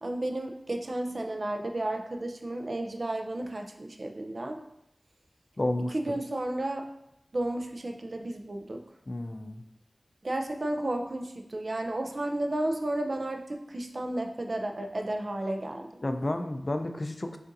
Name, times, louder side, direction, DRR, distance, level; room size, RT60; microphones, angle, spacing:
voice 1, 0.0-4.6 5.9-6.9 7.3-8.8 10.2-15.9, right 1 dB, 60° right, 3 dB, 0.5 m, -32 dB
voice 2, 5.6-6.1 9.1-9.6 16.0-17.4, left 1 dB, 45° left, 7 dB, 0.4 m, -31 dB
6.3 x 2.6 x 2.6 m, 0.81 s
wide cardioid pair, 45°, 0 cm